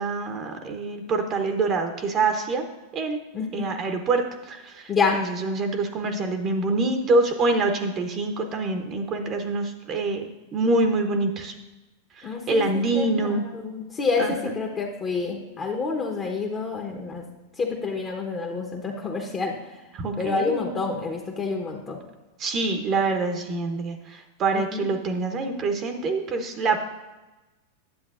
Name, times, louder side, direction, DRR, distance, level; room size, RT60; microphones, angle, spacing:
voice 1, 0.0-2.7 2.9-3.2 3.5-11.5 12.2-13.4 14.2-14.6 19.9-20.6 22.4-26.8, right 3 dB, 35° right, 5 dB, 0.8 m, -25 dB
voice 2, 3.3-3.7 4.9-5.2 12.2-17.2 17.6-19.8 20.2-22.0 24.5-24.9, left 4 dB, 30° left, 0 dB, 1.0 m, -28 dB
9.6 x 7.3 x 2.5 m, 1.1 s
hypercardioid pair, 105°, 0 cm